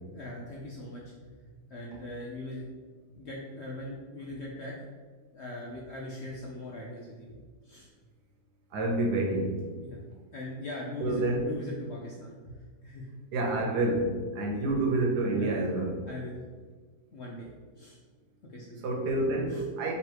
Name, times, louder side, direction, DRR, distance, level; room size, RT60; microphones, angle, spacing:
voice 1, 0.1-1.4 1.7-2.7 3.2-4.7 5.3-7.4 7.6-7.9 9.8-10.0 10.3-13.1 15.3-15.6 16.1-16.4 17.1-17.5 17.8-18.0 18.5-18.9 19.5-19.6, left 1 dB, 70° left, -3 dB, 0.6 m, -40 dB
voice 2, 8.7-9.6 11.0-11.5 13.3-16.0 18.8-19.9, right 2 dB, 90° right, 0 dB, 1.4 m, -28 dB
3.2 x 3.0 x 4.5 m, 1.5 s
omnidirectional pair, 1.7 m